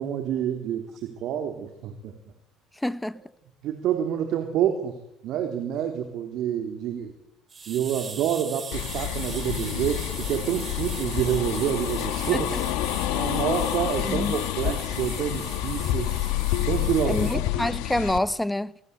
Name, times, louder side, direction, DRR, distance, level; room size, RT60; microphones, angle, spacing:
voice 1, 0.0-2.1 3.6-5.0 5.2-7.1 7.7-12.5 13.1-16.1 16.7-17.4, right 10 dB, 65° right, 3.7 m, -28 dB
voice 2, 2.8-3.2 14.0-14.4 17.0-18.7, left 1 dB, 5° left, 1.2 m, -27 dB
sound 1, 7.5-17.4, right 5 dB, 30° right, 4.8 m, -40 dB
sound 2, 8.7-18.2, left 13 dB, 80° left, 1.6 m, -28 dB
26.5 x 19.5 x 8.4 m
supercardioid pair, 90°, 0 cm